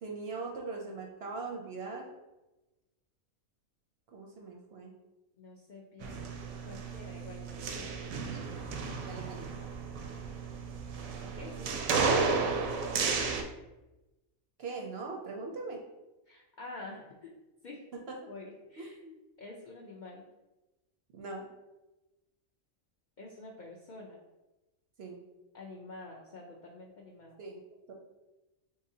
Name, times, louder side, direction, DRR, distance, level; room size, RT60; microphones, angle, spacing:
voice 1, 0.0-2.1 4.1-4.9 7.5-7.7 8.3-8.4 9.0-9.5 14.6-15.8 18.8-19.1 21.1-21.5 25.0-25.2 27.4-27.6 27.9-28.0, right 3 dB, 60° right, 0 dB, 0.7 m, -41 dB
voice 2, 5.4-6.2 6.7-8.0 11.3-11.8 16.3-17.3 17.6-17.8 18.3-19.0 19.4-20.3 23.2-24.2 25.5-27.4, left 2 dB, 65° left, -2 dB, 0.4 m, -48 dB
sound 1, 6.0-13.4, right 4 dB, 85° right, 1.0 m, -33 dB
3.8 x 3.7 x 2.7 m, 1.0 s
omnidirectional pair, 1.4 m